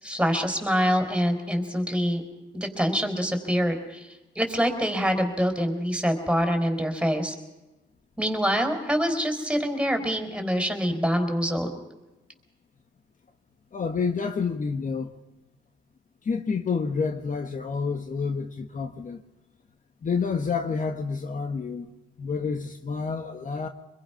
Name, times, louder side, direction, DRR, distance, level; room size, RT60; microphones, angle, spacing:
voice 1, 0.0-2.2 2.5-7.3 8.2-11.7, equal, 5° right, 4.5 m, -25 dB
voice 2, 13.7-15.1 16.2-19.2 20.0-21.9 22.2-23.7, left 5 dB, 40° left, 1.6 m, -29 dB
25.0 x 22.0 x 5.9 m
cardioid pair, 90°, 20 cm